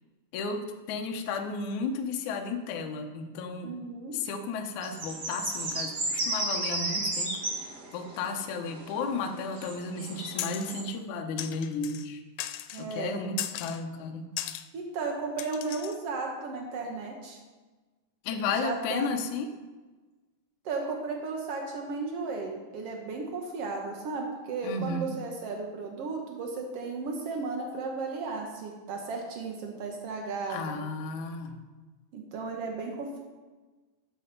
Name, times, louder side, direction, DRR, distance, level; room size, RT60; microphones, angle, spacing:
voice 1, 0.3-3.8 4.1-7.4 7.7-12.2 12.8-14.3 18.2-19.5 24.6-25.1 30.5-31.6, left 4 dB, 70° left, 4 dB, 1.8 m, -33 dB
voice 2, 3.6-4.2 12.7-13.2 14.7-17.4 18.5-19.2 20.6-30.7 32.1-33.2, right 4 dB, 85° right, 1 dB, 1.3 m, -35 dB
sound 1, 4.8-10.8, right 2 dB, 60° right, 1.1 m, -34 dB
sound 2, 10.4-10.8 11.4-12.1 12.4-12.8 13.4-13.8 14.4-14.7 15.4-16.0, left 13 dB, 90° left, 2.7 m, -37 dB
13.0 x 7.6 x 5.3 m, 1.3 s
omnidirectional pair, 4.7 m